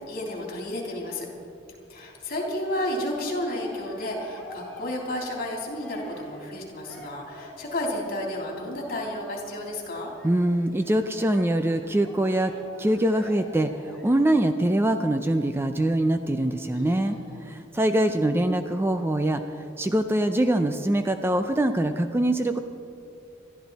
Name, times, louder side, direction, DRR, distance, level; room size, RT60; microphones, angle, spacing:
voice 1, 0.1-1.3 1.9-10.1 16.7-17.5, left 1 dB, 50° left, -1 dB, 3.3 m, -32 dB
Cheering, 3.3-8.0 8.8-14.4, left 1 dB, 5° left, 2.9 m, -48 dB
voice 2, 10.2-12.5 12.8-22.6, right 1 dB, 10° right, 7 dB, 0.5 m, -24 dB
21.5 x 13.0 x 4.1 m, 2.5 s
head